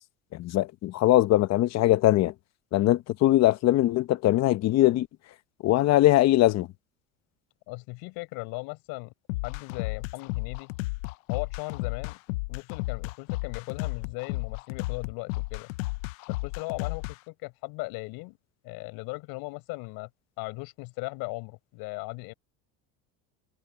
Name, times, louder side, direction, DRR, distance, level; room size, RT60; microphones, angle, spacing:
voice 1, 0.3-2.3 2.7-5.1 5.6-6.7, left 15 dB, 45° left, 0.9 m, -21 dB
voice 2, 7.7-9.1 9.4-10.7 11.3-12.2 12.5-15.7 16.3-18.4 18.6-20.1 20.4-22.3, left 27 dB, 70° left, 5.7 m, -38 dB
sound 1, 9.3-17.1, left 22 dB, 85° left, 0.7 m, -33 dB
supercardioid pair, 120°, 38 cm